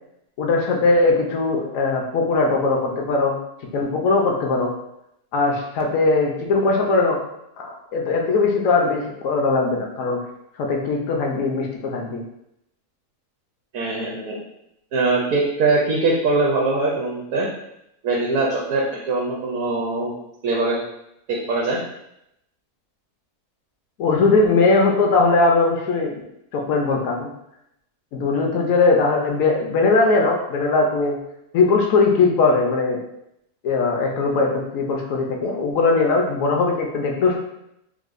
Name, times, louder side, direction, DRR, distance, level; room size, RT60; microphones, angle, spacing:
voice 1, 0.4-3.4 3.7-4.7 5.3-7.2 7.6-10.2 10.6-12.2 24.0-26.1 26.5-27.3 28.1-31.2 31.5-33.0 33.6-37.4, left 3 dB, 70° left, 1 dB, 0.9 m, -20 dB
voice 2, 13.7-14.4 14.9-17.5 18.0-20.8 21.3-21.8, right 3 dB, 70° right, -3 dB, 1.0 m, -22 dB
4.7 x 2.1 x 2.4 m, 0.82 s
omnidirectional pair, 1.6 m